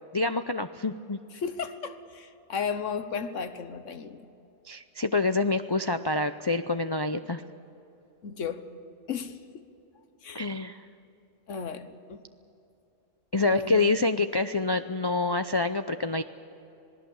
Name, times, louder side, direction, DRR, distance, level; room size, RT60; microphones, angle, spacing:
voice 1, 0.1-1.2 4.7-7.4 10.3-10.8 13.3-16.2, left 3 dB, 40° left, 9 dB, 0.3 m, -27 dB
voice 2, 1.3-4.3 8.2-8.7 9.1-9.6 10.2-10.5 11.5-12.2 13.4-13.9, left 6 dB, 80° left, 10 dB, 1.4 m, -34 dB
27.0 x 19.0 x 7.2 m, 2.9 s
omnidirectional pair, 1.3 m